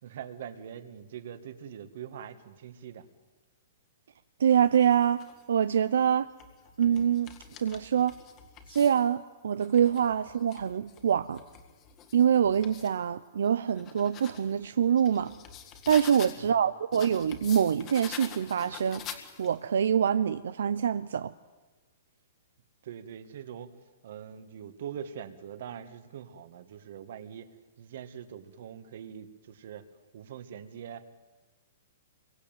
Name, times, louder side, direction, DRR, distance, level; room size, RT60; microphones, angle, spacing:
voice 1, 0.0-3.1 16.4-16.7 22.8-23.7 24.0-27.5 27.8-29.9 30.1-31.1, right 8 dB, 50° right, 2.1 m, -43 dB
voice 2, 4.4-6.3 6.8-8.2 8.7-11.4 12.1-15.3 15.9-19.1 19.4-21.3, right 8 dB, 75° right, 0.9 m, -25 dB
sound 1, 4.7-5.4 6.1-9.1 9.5-13.0 13.4-16.5 16.9-19.7, left 8 dB, 20° left, 1.9 m, -47 dB
27.0 x 23.0 x 9.3 m
hypercardioid pair, 175°, 0 cm